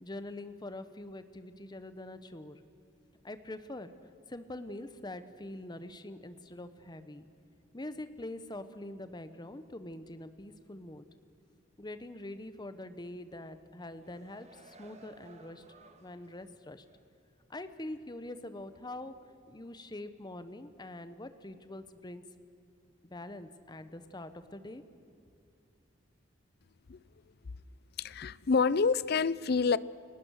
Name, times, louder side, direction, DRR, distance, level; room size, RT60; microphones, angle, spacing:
voice 1, 0.0-2.6 3.2-3.9 4.3-7.3 7.7-11.1 11.8-15.6 16.0-16.8 17.5-19.2 19.5-22.2 23.0-24.8, left 1 dB, 25° left, 11 dB, 1.0 m, -44 dB
sound 1, 13.7-16.5 16.9-17.0, right 3 dB, 35° right, 1.7 m, -58 dB
voice 2, 28.0-29.8, left 5 dB, 55° left, 19 dB, 0.5 m, -27 dB
29.5 x 18.5 x 6.5 m, 2.7 s
head